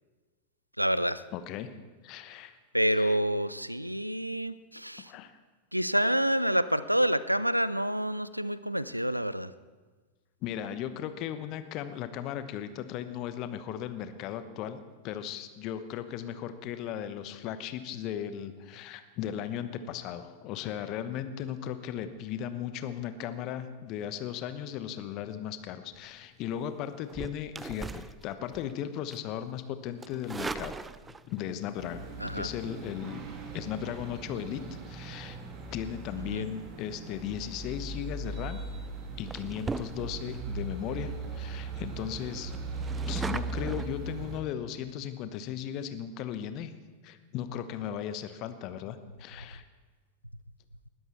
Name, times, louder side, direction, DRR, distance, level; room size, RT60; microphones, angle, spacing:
voice 1, 0.8-1.2 2.7-5.1 5.7-9.5 32.2-32.5 36.3-36.4, equal, 90° right, 17 dB, 0.4 m, -28 dB
voice 2, 1.3-1.7 2.0-2.5 2.9-3.2 5.1-5.3 10.4-14.8 15.0-33.2 33.5-34.6 34.9-35.4 35.7-38.6 39.1-42.5 43.1-46.7 47.0-49.6, left 10 dB, 40° left, 11 dB, 1.1 m, -37 dB
sound 1, 27.1-28.7 29.1-29.4 30.0-31.4 32.7-32.9 38.0-38.2 38.7-38.9 39.3-40.4 40.9-41.0 41.2-41.3 41.7-41.8 42.1-43.9, right 4 dB, 10° right, 0.5 m, -39 dB
sound 2, 31.8-44.4, right 3 dB, 35° right, 2.3 m, -39 dB
20.5 x 13.0 x 4.4 m, 1.4 s
figure-of-eight pair, 90°, 0 cm